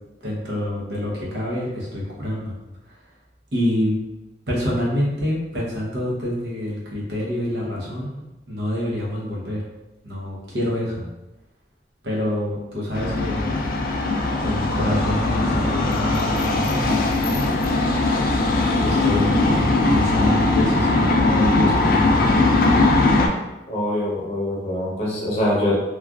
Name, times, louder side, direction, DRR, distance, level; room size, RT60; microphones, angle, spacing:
voice 1, 0.2-2.6 2.9-3.0 3.5-3.9 4.5-9.6 10.0-11.1 12.0-13.7 14.4-17.3 18.8-22.8, left 1 dB, 80° right, -5 dB, 0.8 m, -27 dB
sound 1, 12.9-23.3, left 2 dB, 55° left, 0.3 m, -20 dB
voice 2, 23.7-25.8, left 1 dB, 35° left, -5 dB, 0.7 m, -23 dB
3.1 x 2.4 x 2.3 m, 1.0 s
head